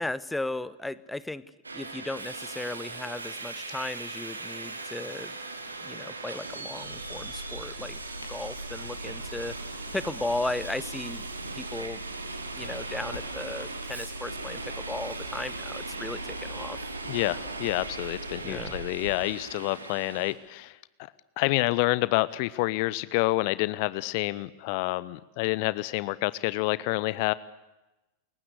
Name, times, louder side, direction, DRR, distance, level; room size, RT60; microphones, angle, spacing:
voice 1, 0.0-1.4 1.7-5.4 5.8-8.0 8.3-11.2 11.5-12.0 12.5-16.8 18.4-18.7, left 2 dB, 5° left, 17 dB, 1.1 m, -36 dB
Subway metro underground, 1.6-20.3, right 3 dB, 80° right, 3.2 m, -39 dB
sound 1, 6.8-18.8, left 1 dB, 75° left, 4.9 m, -43 dB
voice 2, 17.1-21.1 21.4-27.3, left 21 dB, 45° left, 19 dB, 0.8 m, -28 dB
28.5 x 22.5 x 8.3 m, 1.0 s
figure-of-eight pair, 90°, 0 cm